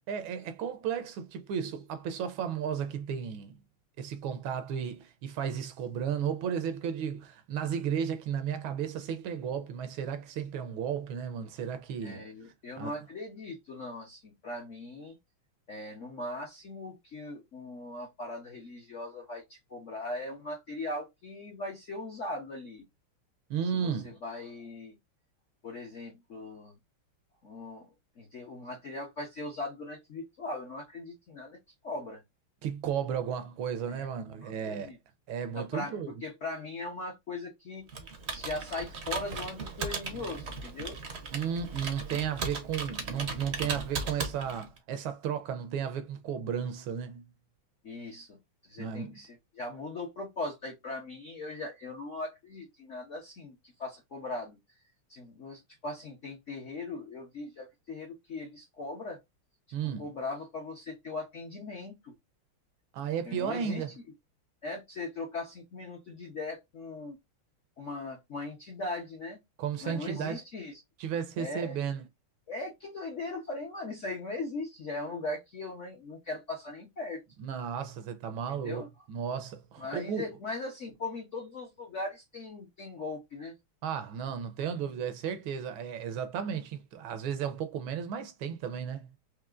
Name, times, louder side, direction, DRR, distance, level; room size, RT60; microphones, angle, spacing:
voice 1, 0.1-3.6 4.0-12.3 12.8-12.9 23.5-24.1 32.6-34.9 35.3-36.1 41.3-47.3 48.8-49.2 59.7-60.1 62.9-63.9 69.6-70.4 71.0-72.0 77.4-78.8 79.1-80.3 83.8-89.1, right 8 dB, 75° right, 1.3 m, -34 dB
voice 2, 12.0-15.1 15.7-22.8 23.8-24.9 25.6-26.7 27.4-27.9 28.2-31.6 31.8-32.2 33.9-34.1 34.4-35.0 35.6-37.8 38.3-41.0 47.8-48.4 48.7-54.6 55.1-59.2 60.0-62.1 63.3-63.8 64.6-67.2 67.8-69.4 69.8-70.8 71.4-71.8 72.5-77.2 78.5-78.9 79.8-83.5, left 2 dB, 55° left, 0.9 m, -39 dB
Computer keyboard, 37.9-44.8, right 4 dB, 60° right, 0.7 m, -37 dB
4.7 x 2.8 x 2.4 m
omnidirectional pair, 2.4 m